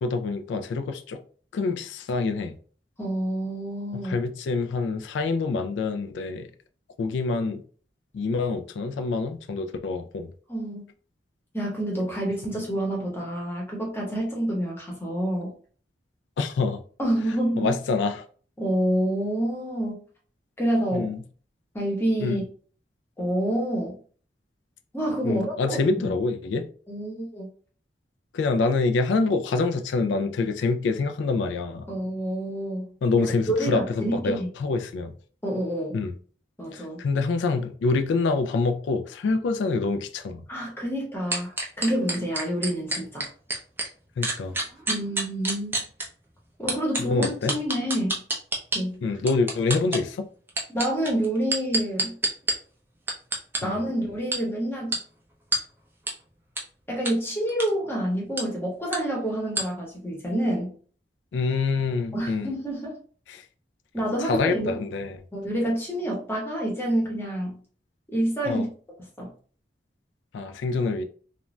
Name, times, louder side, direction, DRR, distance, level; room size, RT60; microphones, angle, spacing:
voice 1, 0.0-1.2 1.5-2.5 3.9-6.5 7.0-7.6 8.1-10.3 16.4-16.8 17.6-18.2 20.9-21.2 22.2-22.4 25.2-26.7 28.3-31.9 33.0-35.1 35.9-36.1 36.7-40.4 44.2-44.5 47.0-47.5 49.0-50.3 53.6-53.8 61.3-62.5 63.3-63.4 64.2-65.2 68.5-68.7 70.3-71.0, left 4 dB, 85° left, 0.3 m, -26 dB
voice 2, 3.0-4.2 10.5-10.8 11.5-15.5 17.0-17.7 18.6-20.0 20.6-21.1 21.7-22.4 23.2-23.9 24.9-26.1 26.9-27.5 31.9-34.5 35.4-36.0 36.6-37.0 40.5-43.3 44.9-45.8 46.6-48.2 48.7-49.0 50.7-52.1 53.6-55.0 56.9-60.7 62.1-62.9 63.9-64.8 65.3-67.6 68.1-68.7 69.2-69.3, right 1 dB, 15° left, 0.8 m, -28 dB
sound 1, 41.3-43.9 44.2-46.0 46.7-48.8 49.3-50.0 50.5-52.5 53.1-53.6 54.3-54.4 54.9-55.0 55.5-55.6 56.1-56.2 56.6-56.7 57.0-57.1 57.5-57.7 58.4-58.5 58.9-59.0 59.5-59.6, right 2 dB, 10° right, 0.5 m, -26 dB
2.5 x 2.2 x 3.1 m
head